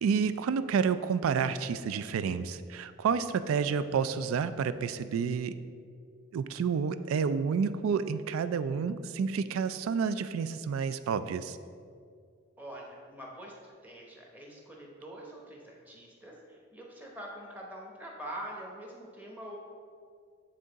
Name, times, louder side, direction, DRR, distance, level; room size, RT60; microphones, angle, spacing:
voice 1, 0.0-5.5 6.3-11.6, right 6 dB, 85° right, 12 dB, 0.3 m, -29 dB
voice 2, 12.6-19.6, right 1 dB, 10° right, -2 dB, 0.9 m, -45 dB
8.7 x 3.7 x 3.9 m, 2.2 s
head